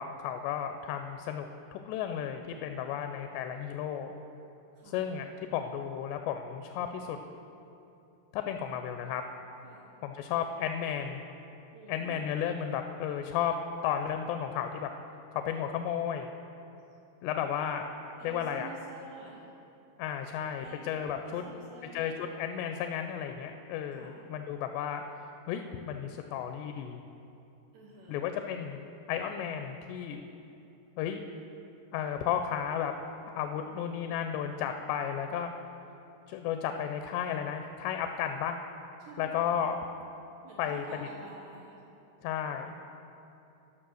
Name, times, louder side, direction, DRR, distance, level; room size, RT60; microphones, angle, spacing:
voice 1, 0.0-4.1 4.9-7.2 8.3-9.2 10.0-11.2 11.9-13.5 13.8-14.9 15.3-16.3 17.2-18.7 20.0-21.4 21.9-25.0 25.5-27.0 28.1-28.8 29.1-30.2 31.0-31.2 31.9-32.9 33.4-35.5 36.3-38.6 39.2-39.8 40.6-40.8 42.2-42.8, left 9 dB, 85° left, 6 dB, 2.6 m, -33 dB
voice 2, 11.7-12.2 18.2-19.5 20.5-22.1 23.9-24.2 27.7-28.3 39.0-39.5 40.4-41.8, right 3 dB, 75° right, -4 dB, 3.0 m, -49 dB
13.0 x 6.0 x 6.2 m, 2.8 s
omnidirectional pair, 4.9 m